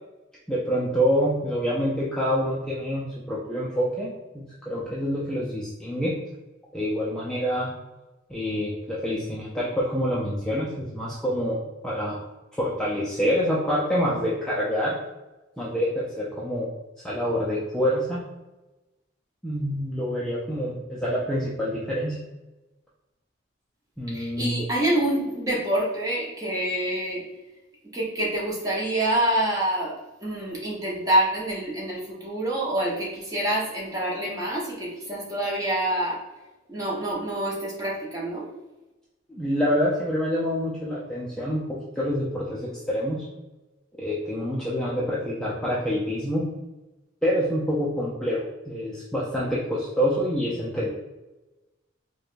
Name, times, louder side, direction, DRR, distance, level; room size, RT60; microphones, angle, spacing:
voice 1, 0.5-6.1 6.7-7.7 8.3-12.2 12.6-15.0 15.6-16.7 17.0-18.2 19.4-22.2 24.0-24.6 39.3-43.2 44.0-46.5 47.2-50.9, equal, 5° left, -7 dB, 0.4 m, -26 dB
voice 2, 24.1-27.2 27.9-29.9 30.2-36.2 36.7-38.5, right 1 dB, 20° right, -5 dB, 0.9 m, -26 dB
4.7 x 2.2 x 2.5 m, 1.1 s
head